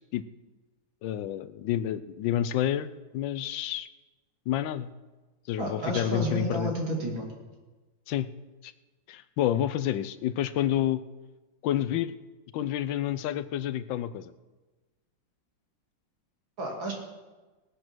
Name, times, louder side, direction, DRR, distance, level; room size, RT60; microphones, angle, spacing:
voice 1, 1.0-2.9 3.1-3.9 4.5-4.9 5.5-6.7 8.1-8.3 8.6-8.7 9.1-11.0 11.6-12.1 12.5-14.3, left 11 dB, 80° left, 14 dB, 1.3 m, -29 dB
voice 2, 5.6-7.3 16.6-16.9, right 2 dB, 85° right, -1 dB, 3.5 m, -31 dB
18.0 x 8.3 x 6.1 m, 1.2 s
omnidirectional pair, 2.1 m